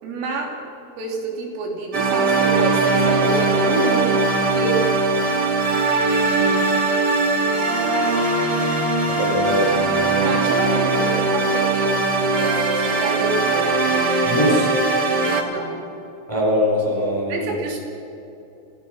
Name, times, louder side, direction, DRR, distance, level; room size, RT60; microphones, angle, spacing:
voice 1, 0.0-0.6 1.0-4.9 6.3-6.7 10.2-13.8 15.5-15.8 17.3-17.8, right 3 dB, 75° right, 0 dB, 5.7 m, -28 dB
sound 1, 1.9-15.4, right 3 dB, 60° right, 1.1 m, -20 dB
voice 2, 9.1-9.9 14.2-14.7 16.3-17.5, left 1 dB, 5° left, -2 dB, 3.6 m, -21 dB
26.0 x 17.0 x 6.4 m, 2.9 s
omnidirectional pair, 5.9 m